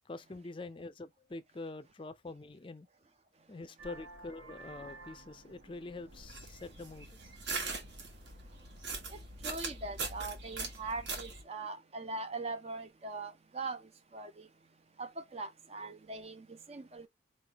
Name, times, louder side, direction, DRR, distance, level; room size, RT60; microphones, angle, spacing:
voice 1, 0.1-2.9 3.5-7.1, left 2 dB, 25° left, 0.4 m, -45 dB
Vehicle horn car horn honking, 3.8-8.8, right 2 dB, 80° right, 1.4 m, -55 dB
sound 1, 6.1-11.4, right 4 dB, 65° right, 1.4 m, -41 dB
voice 2, 9.4-13.8 14.1-14.5 15.0-17.1, right 3 dB, 30° right, 0.5 m, -41 dB
4.4 x 3.3 x 2.9 m
head